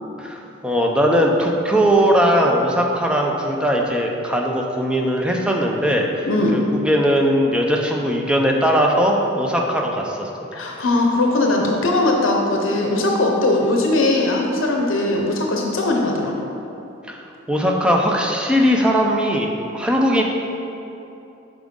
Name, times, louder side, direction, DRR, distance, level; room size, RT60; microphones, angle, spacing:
voice 1, 0.2-10.3 17.1-17.2 17.5-20.2, equal, 5° right, 0 dB, 0.5 m, -19 dB
voice 2, 6.3-6.6 10.5-16.4, left 2 dB, 70° left, 0 dB, 0.7 m, -19 dB
7.4 x 5.0 x 3.7 m, 2.9 s
head